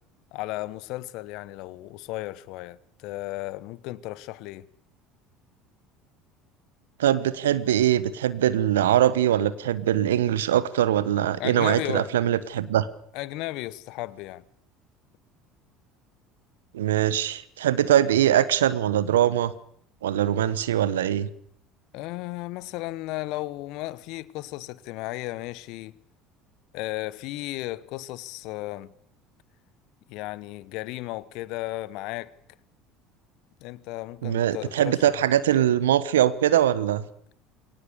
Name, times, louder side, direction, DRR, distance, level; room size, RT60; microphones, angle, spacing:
voice 1, 0.3-4.6 11.4-12.1 13.1-14.4 21.9-25.9 26.7-28.9 30.1-32.3 33.6-35.1, left 18 dB, 60° left, 1.1 m, -34 dB
voice 2, 7.0-12.9 16.7-19.5 20.0-21.3 34.2-37.0, right 11 dB, 80° right, 1.1 m, -22 dB
22.0 x 18.0 x 6.9 m
hypercardioid pair, 65°, 0 cm